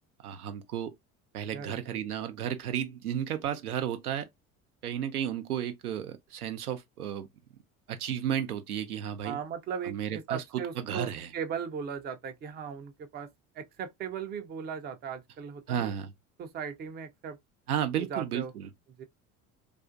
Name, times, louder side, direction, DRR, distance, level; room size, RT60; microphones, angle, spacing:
voice 1, 0.2-0.9 1.3-4.3 4.8-7.3 7.9-9.4 9.8-10.4 10.8-11.3 15.7-16.1 17.7-18.7, right 9 dB, 85° right, 0.5 m, -33 dB
voice 2, 1.5-2.0 9.2-13.3 13.5-15.9 16.4-17.4 18.1-18.5 19.0-19.1, right 7 dB, 25° right, 0.4 m, -38 dB
2.4 x 2.4 x 2.5 m
figure-of-eight pair, 65°, 44 cm